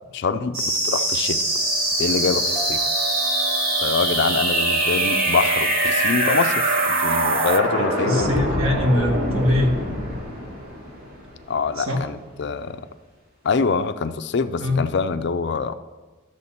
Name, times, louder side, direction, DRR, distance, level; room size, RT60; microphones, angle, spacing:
voice 1, 0.1-1.4 2.0-2.8 3.8-8.3 11.5-12.8 13.4-15.7, left 5 dB, 60° left, 11 dB, 0.5 m, -25 dB
sound 1, 0.5-11.6, equal, 45° right, 3.5 m, -24 dB
sound 2, 1.1-7.6, right 7 dB, 70° right, 0.5 m, -28 dB
sound 3, 2.6-5.9, right 8 dB, 5° left, 0.7 m, -39 dB
voice 2, 8.0-9.7 11.8-12.0 14.6-14.8, left 1 dB, 90° right, 2 dB, 1.6 m, -21 dB
12.0 x 6.8 x 4.2 m, 1.3 s
head